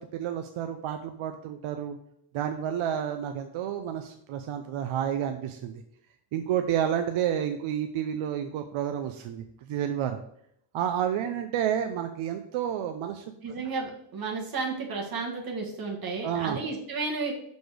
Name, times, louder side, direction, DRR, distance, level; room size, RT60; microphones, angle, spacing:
voice 1, 0.0-2.0 2.3-5.7 6.3-10.2 10.7-13.2 16.2-16.6, right 9 dB, 80° right, 6 dB, 0.7 m, -30 dB
voice 2, 13.4-17.3, right 4 dB, 45° right, 0 dB, 1.7 m, -32 dB
6.8 x 4.2 x 4.9 m, 0.72 s
cardioid pair, 135°, 47 cm